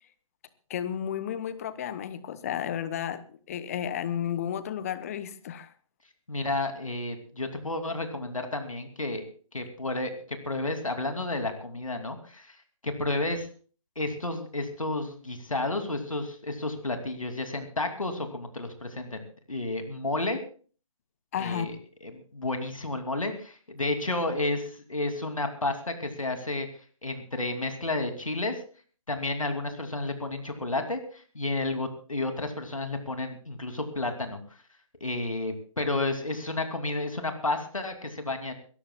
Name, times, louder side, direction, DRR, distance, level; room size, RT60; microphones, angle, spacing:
voice 1, 0.7-5.7 21.3-21.7, left 9 dB, 25° left, 14 dB, 0.9 m, -32 dB
voice 2, 6.3-9.2 9.5-10.1 10.4-12.6 12.8-13.5 14.0-19.2 19.5-20.4 21.4-21.8 22.0-26.7 27.0-28.6 29.1-34.4 35.0-38.5, left 2 dB, 75° left, 6 dB, 2.8 m, -31 dB
22.0 x 17.5 x 2.3 m, 0.40 s
figure-of-eight pair, 140°, 17 cm